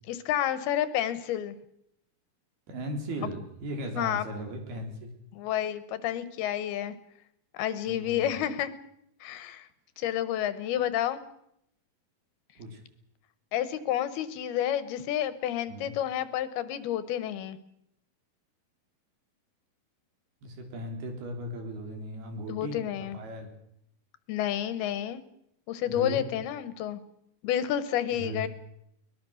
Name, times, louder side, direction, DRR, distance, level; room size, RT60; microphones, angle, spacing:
voice 1, 0.1-1.5 3.9-4.3 5.3-6.9 7.5-8.7 9.2-9.7 10.0-11.2 13.5-17.6 22.5-23.2 24.3-25.2 25.7-27.0 27.4-28.5, left 11 dB, 85° left, 14 dB, 3.3 m, -30 dB
voice 2, 2.7-5.1 7.8-8.4 12.6-12.8 15.7-15.9 20.4-23.5 25.9-26.2 28.2-28.5, right 1 dB, 85° right, 4 dB, 5.7 m, -37 dB
22.5 x 20.5 x 6.5 m, 0.74 s
omnidirectional pair, 4.4 m